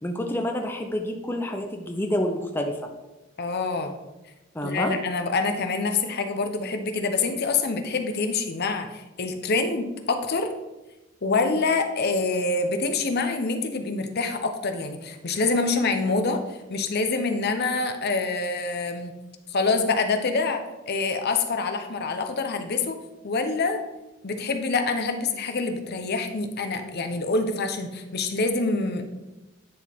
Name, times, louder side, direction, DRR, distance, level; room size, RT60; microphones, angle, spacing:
voice 1, 0.0-2.7 4.5-4.9, left 1 dB, 10° left, 3 dB, 0.5 m, -28 dB
voice 2, 3.4-3.9 4.6-10.5 11.2-19.1 19.5-23.0 23.2-23.8 24.2-29.0, left 3 dB, 50° left, 7 dB, 0.7 m, -26 dB
9.8 x 4.2 x 3.5 m, 1.0 s
head